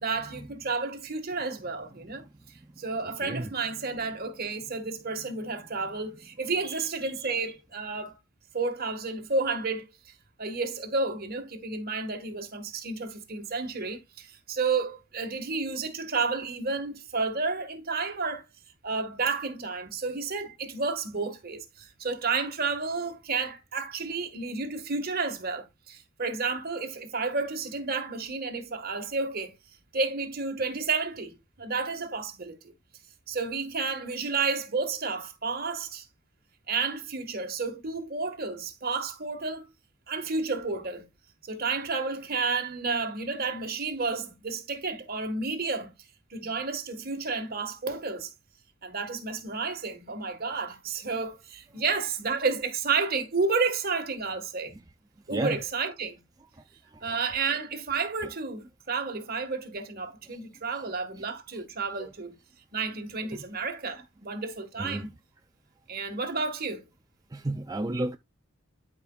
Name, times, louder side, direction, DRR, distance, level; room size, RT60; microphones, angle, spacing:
voice 1, 0.0-2.3 2.8-8.1 8.5-9.9 10.4-18.4 18.8-29.5 29.9-32.7 33.3-36.1 36.7-39.7 40.1-41.1 41.4-45.9 46.3-48.3 48.8-54.7 55.3-56.2 57.0-62.4 62.7-65.1 65.9-66.8, right 4 dB, 50° right, 1.7 m, -31 dB
voice 2, 67.3-68.2, right 2 dB, 20° right, 0.5 m, -32 dB
12.5 x 5.1 x 2.4 m
head